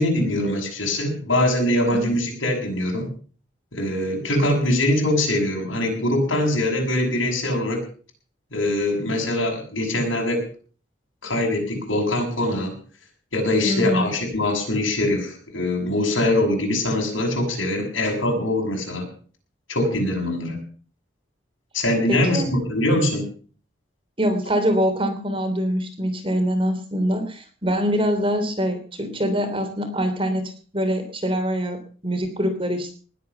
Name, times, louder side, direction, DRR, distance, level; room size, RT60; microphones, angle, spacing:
voice 1, 0.0-3.1 3.7-7.8 8.5-10.5 11.2-12.7 13.3-19.1 19.7-20.7 21.7-23.3, left 1 dB, 85° left, 1 dB, 7.1 m, -23 dB
voice 2, 13.6-14.1 22.1-22.5 24.2-32.9, equal, 25° right, 7 dB, 3.1 m, -24 dB
20.0 x 8.5 x 6.9 m, 0.41 s
head